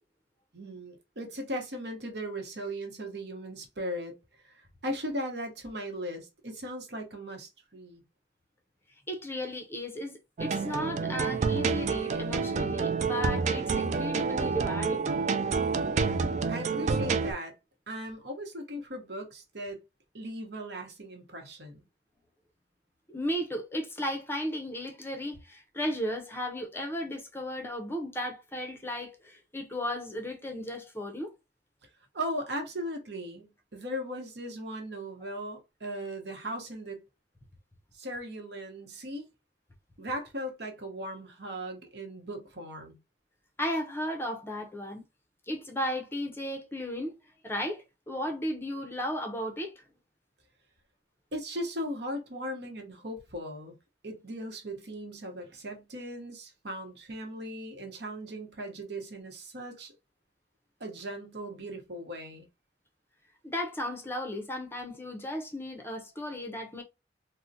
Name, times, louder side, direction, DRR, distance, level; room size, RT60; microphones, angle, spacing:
voice 1, 0.5-4.2 4.4-8.0 16.5-17.5 17.9-19.8 20.1-21.8 32.1-37.0 37.9-39.3 40.0-43.0 51.3-53.8 54.0-59.9 60.8-62.5, equal, 65° right, 1.0 m, -38 dB
voice 2, 9.1-15.1 23.1-31.3 43.6-45.0 45.5-47.2 47.4-49.8 63.4-66.8, equal, 15° left, 0.6 m, -35 dB
sound 1, 10.4-17.3, right 5 dB, 40° right, 0.3 m, -28 dB
3.7 x 2.1 x 2.6 m
head